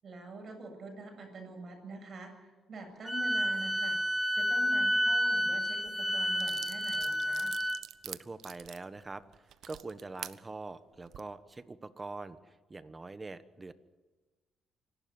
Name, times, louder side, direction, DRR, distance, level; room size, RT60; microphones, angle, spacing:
voice 1, 0.0-4.0 4.3-7.5, right 2 dB, 50° right, 3 dB, 7.9 m, -45 dB
Wind instrument woodwind instrument, 3.1-7.8, equal, ahead, 0.9 m, -30 dB
sound 1, 5.9-6.0 6.4-10.4 10.9-11.2, right 10 dB, 75° right, 0.8 m, -46 dB
voice 2, 8.0-9.2 9.7-13.7, right 3 dB, 25° right, 13 dB, 1.2 m, -44 dB
26.0 x 12.5 x 9.6 m, 1.3 s
cardioid pair, 90°, 0 cm